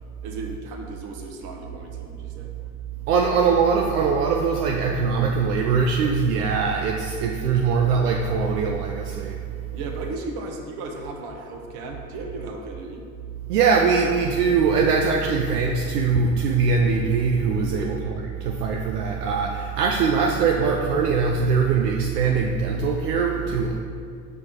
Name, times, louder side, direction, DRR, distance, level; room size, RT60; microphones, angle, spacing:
voice 1, 0.2-2.5 9.7-13.0 17.6-17.9, right 2 dB, 55° right, 2 dB, 1.2 m, -35 dB
voice 2, 3.1-9.4 13.5-17.9 18.4-23.8, right 5 dB, 80° right, 1 dB, 0.6 m, -22 dB
6.2 x 5.5 x 4.7 m, 2.3 s
figure-of-eight pair, 65°, 46 cm